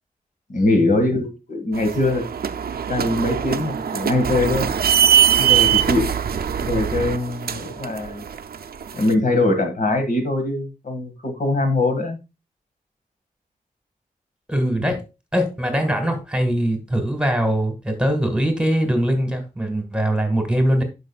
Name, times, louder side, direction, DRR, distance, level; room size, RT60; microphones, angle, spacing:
voice 1, 0.5-2.2 2.9-4.8 5.4-6.1 6.6-8.3 8.9-12.2, left 2 dB, 65° left, 1.9 m, -22 dB
sound 1, 1.7-9.1, right 9 dB, 85° right, 0.5 m, -22 dB
voice 2, 14.5-15.1 15.3-20.8, equal, 5° right, 1.6 m, -21 dB
11.0 x 5.3 x 2.4 m
wide cardioid pair, 115°, 15 cm